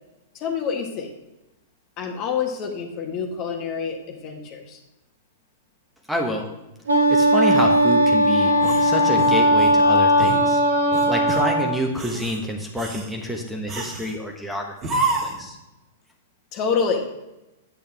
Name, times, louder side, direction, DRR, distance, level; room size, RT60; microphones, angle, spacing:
voice 1, 0.3-1.1 2.0-4.8 16.5-17.1, left 6 dB, 40° left, 3 dB, 1.5 m, -27 dB
voice 2, 6.1-6.5 7.1-10.6 11.1-14.9 15.2-15.6, equal, ahead, 1 dB, 1.3 m, -28 dB
Wind instrument woodwind instrument, 6.9-11.8, equal, 80° right, 1.8 m, -18 dB
sound 1, 8.6-9.8 10.2-10.4 10.9-11.5 11.9-12.4 12.8-13.1 13.7-14.2 14.8-15.5, right 2 dB, 25° right, 1.8 m, -28 dB
8.8 x 8.4 x 3.5 m, 0.96 s
figure-of-eight pair, 105°, 0 cm